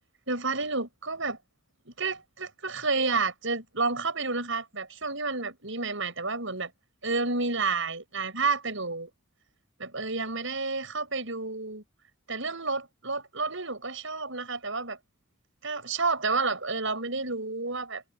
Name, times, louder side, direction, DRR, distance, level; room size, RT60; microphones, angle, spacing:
voice 1, 0.3-1.4 1.9-6.7 7.0-9.1 9.8-11.8 12.3-15.0 15.6-18.0, right 3 dB, 60° right, 7.3 m, -30 dB
head